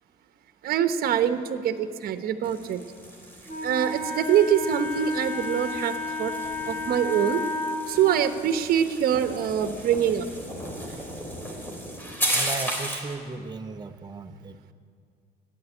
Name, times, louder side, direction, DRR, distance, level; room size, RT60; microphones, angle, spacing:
voice 1, 0.6-2.8 3.6-6.3 6.7-7.4 7.9-10.3, right 9 dB, 60° right, 9 dB, 0.9 m, -24 dB
sound 1, 2.4-13.1, equal, 10° left, 3.2 m, -35 dB
Wind instrument woodwind instrument, 3.5-7.8, left 2 dB, 50° left, 3.9 m, -32 dB
voice 2, 12.3-14.6, right 3 dB, 25° right, 7 dB, 0.8 m, -36 dB
12.5 x 9.5 x 9.9 m, 2.2 s
cardioid pair, 110°, 17 cm